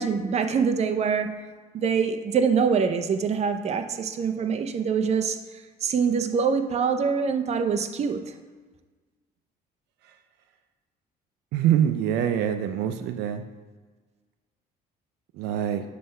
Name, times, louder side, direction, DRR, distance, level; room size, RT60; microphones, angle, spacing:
voice 1, 0.0-1.3 1.7-5.4 5.8-8.2, right 6 dB, 40° right, 7 dB, 0.6 m, -24 dB
voice 2, 11.5-13.4 15.4-15.8, right 10 dB, 85° right, 8 dB, 0.5 m, -24 dB
7.5 x 3.3 x 5.4 m, 1.4 s
cardioid pair, 110°, 17 cm